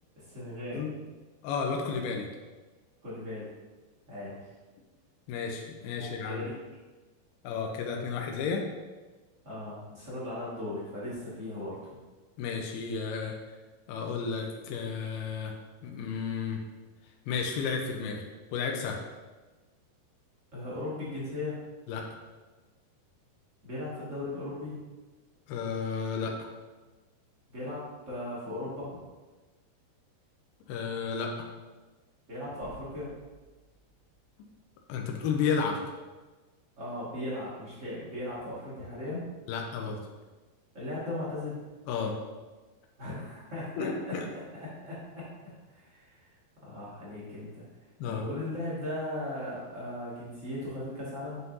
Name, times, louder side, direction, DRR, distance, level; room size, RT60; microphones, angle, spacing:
voice 1, 0.2-0.8 3.0-3.5 4.1-4.5 6.0-6.5 9.4-12.0 20.5-21.5 23.6-24.7 27.5-29.0 32.3-33.1 36.8-39.2 40.7-41.6 43.0-45.3 45.7-46.3 46.6-47.6 48.0-51.4, left 1 dB, 75° right, -8 dB, 0.7 m, -37 dB
voice 2, 1.4-2.3 5.3-6.4 7.4-8.6 12.4-13.3 13.9-15.6 15.8-16.6 17.3-18.2 18.5-19.0 21.9-22.1 25.5-26.5 30.7-31.5 34.9-36.0 39.5-40.0 41.9-42.2 43.8-44.3 48.0-48.2, left 5 dB, 85° left, 1 dB, 2.6 m, -32 dB
sound 1, 32.6-35.1, right 3 dB, 50° right, 2.0 m, -55 dB
9.4 x 5.7 x 2.6 m, 1.3 s
omnidirectional pair, 4.6 m